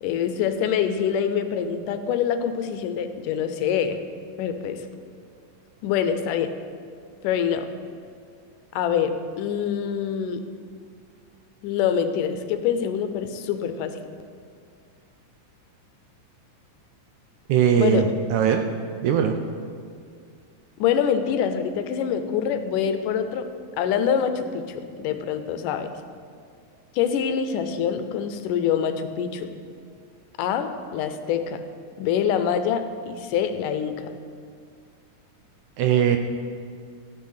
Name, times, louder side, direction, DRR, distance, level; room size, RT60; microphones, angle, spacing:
voice 1, 0.0-4.0 4.4-4.8 5.8-6.5 7.2-7.7 8.7-10.4 11.6-14.0 17.8-18.1 20.8-23.5 23.8-25.9 26.9-29.5 30.4-31.6 32.0-34.1, left 8 dB, 80° left, 9 dB, 2.2 m, -25 dB
voice 2, 17.5-18.6 19.0-19.4 35.8-36.2, right 8 dB, 75° right, 6 dB, 1.9 m, -20 dB
14.0 x 9.1 x 5.6 m, 2.2 s
omnidirectional pair, 3.8 m